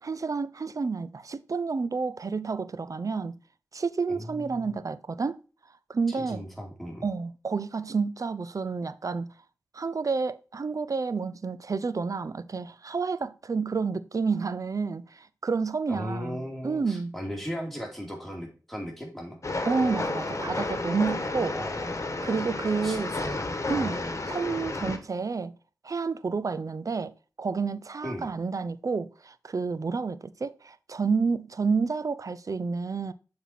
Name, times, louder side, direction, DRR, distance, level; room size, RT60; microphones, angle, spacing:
voice 1, 0.0-3.4 3.7-5.4 5.9-6.5 7.0-9.3 9.7-17.1 19.6-21.6 22.2-23.2 23.7-24.0 24.3-25.5 25.8-33.1, right 4 dB, 55° right, 0.5 m, -30 dB
voice 2, 4.1-4.7 6.1-7.1 15.9-19.4 21.3-22.0 22.8-24.2 28.0-28.3, equal, 5° left, 2.5 m, -37 dB
Train, 19.4-25.0, left 2 dB, 50° left, 1.2 m, -31 dB
7.0 x 4.4 x 4.2 m
cardioid pair, 45°, 7 cm